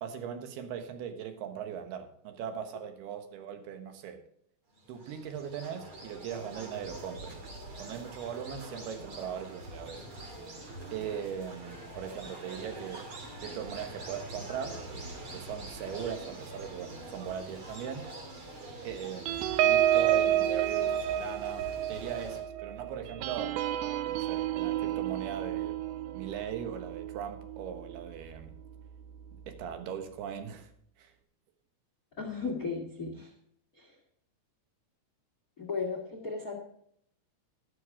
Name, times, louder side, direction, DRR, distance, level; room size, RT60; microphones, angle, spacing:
voice 1, 0.0-4.3 4.9-7.5 7.8-10.0 10.9-13.1 13.4-18.1 18.8-23.6 24.1-25.8 26.1-28.5 29.5-30.7 31.0-31.1, right 8 dB, 70° right, 3.1 m, -39 dB
sound 1, 4.7-22.4, right 2 dB, 35° right, 3.0 m, -45 dB
sound 2, 19.3-28.2 28.6-28.8 29.1-29.4, right 12 dB, 90° right, 2.8 m, -30 dB
voice 2, 32.2-33.3 33.8-33.9 35.6-36.6, left 4 dB, 70° left, 0.8 m, -35 dB
12.5 x 12.0 x 3.6 m
omnidirectional pair, 5.0 m